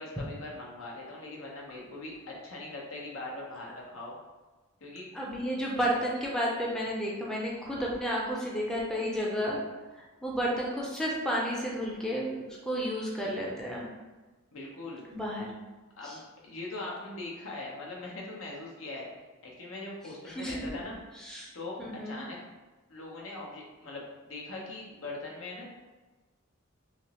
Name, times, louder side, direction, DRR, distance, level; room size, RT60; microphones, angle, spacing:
voice 1, 0.0-4.2 4.8-5.1 14.5-15.0 16.0-19.1 19.4-21.0 21.5-21.8 22.0-22.4 22.9-25.7, left 2 dB, 70° left, -3 dB, 0.9 m, -41 dB
voice 2, 5.1-9.6 9.9-13.9 15.1-15.5 16.0-16.2 20.3-20.8 21.2-21.5 21.8-22.2, equal, 5° left, -4 dB, 0.5 m, -32 dB
3.4 x 3.0 x 2.9 m, 1.2 s
head